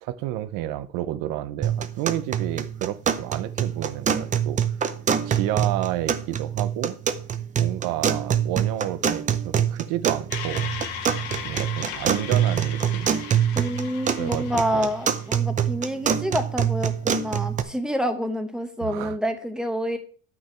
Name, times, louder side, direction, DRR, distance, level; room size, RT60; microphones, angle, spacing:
voice 1, 0.0-4.6 5.2-7.0 7.6-10.7 11.4-13.1 14.2-14.5 14.7-14.9 18.8-19.2, right 13 dB, 70° right, 0.8 m, -30 dB
sound 1, 1.6-17.6, right 8 dB, 25° right, 0.6 m, -25 dB
sound 2, 10.3-15.4, left 8 dB, 85° left, 1.7 m, -37 dB
voice 2, 13.5-20.0, equal, ahead, 1.0 m, -27 dB
10.5 x 6.0 x 4.5 m
cardioid pair, 150°, 33 cm